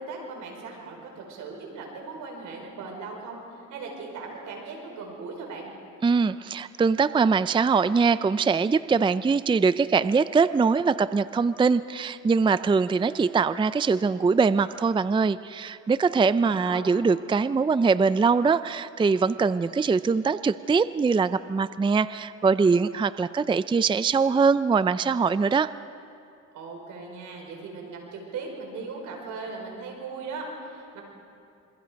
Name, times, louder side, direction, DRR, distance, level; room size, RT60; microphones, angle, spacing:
voice 1, 0.0-3.4 3.7-5.7 16.2-16.9 26.5-31.0, right 4 dB, 85° right, 1 dB, 5.3 m, -38 dB
voice 2, 6.0-25.7, right 5 dB, 15° right, 15 dB, 0.4 m, -22 dB
27.0 x 24.0 x 5.2 m, 2.6 s
cardioid pair, 90°, 30 cm